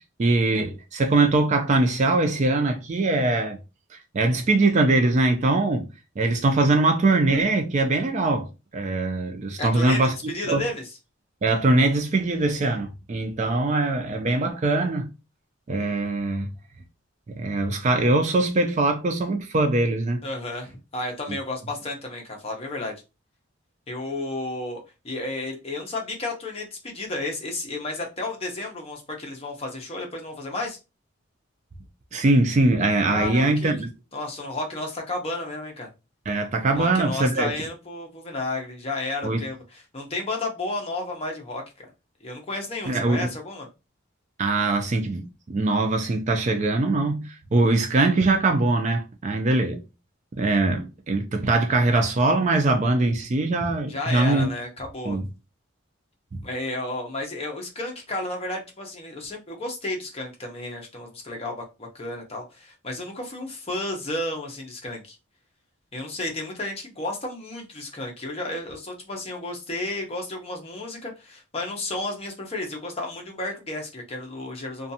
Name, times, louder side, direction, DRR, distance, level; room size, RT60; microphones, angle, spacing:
voice 1, 0.2-3.6 4.1-5.9 6.2-10.1 10.5-10.6 11.4-15.1 15.7-16.5 17.3-20.2 32.1-33.9 36.3-37.5 39.2-39.4 42.9-43.3 44.4-49.8 50.3-54.5 55.0-55.3, right 2 dB, 35° right, 0.4 m, -22 dB
voice 2, 9.6-10.8 20.2-22.9 23.9-24.8 25.0-30.8 33.1-33.7 34.1-35.9 36.8-39.6 39.9-41.9 42.2-43.7 53.9-55.2 56.4-65.2 65.9-74.9, left 2 dB, 30° left, 0.6 m, -32 dB
2.5 x 2.2 x 2.7 m
head